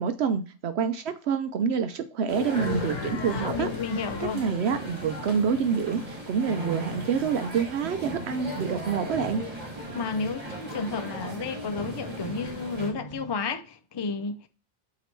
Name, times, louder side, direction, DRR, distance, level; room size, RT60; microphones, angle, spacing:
voice 1, 0.0-3.7 4.2-9.4, right 6 dB, 70° right, 0.8 m, -27 dB
sound 1, 2.3-12.9, right 1 dB, 30° right, 1.7 m, -37 dB
sound 2, 2.5-7.8, left 7 dB, 70° left, 0.9 m, -40 dB
voice 2, 3.3-4.4 9.9-14.5, left 4 dB, 40° left, 0.4 m, -32 dB
sound 3, 8.0-13.4, right 2 dB, 15° left, 1.2 m, -45 dB
8.1 x 3.0 x 4.5 m
omnidirectional pair, 1.2 m